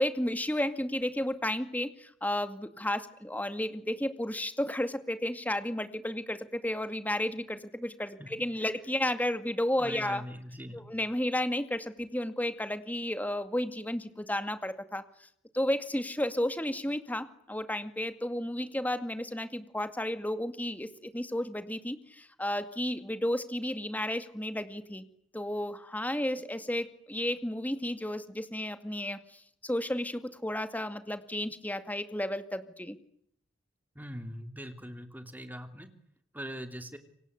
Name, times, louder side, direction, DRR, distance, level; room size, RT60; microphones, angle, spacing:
voice 1, 0.0-10.2 10.7-15.0 15.5-25.0 25.3-29.2 29.6-33.0, left 1 dB, 10° left, 10 dB, 2.2 m, -32 dB
voice 2, 9.8-10.9 33.9-35.9 36.3-37.0, equal, 10° right, 7 dB, 3.1 m, -41 dB
28.0 x 24.5 x 8.2 m, 0.69 s
head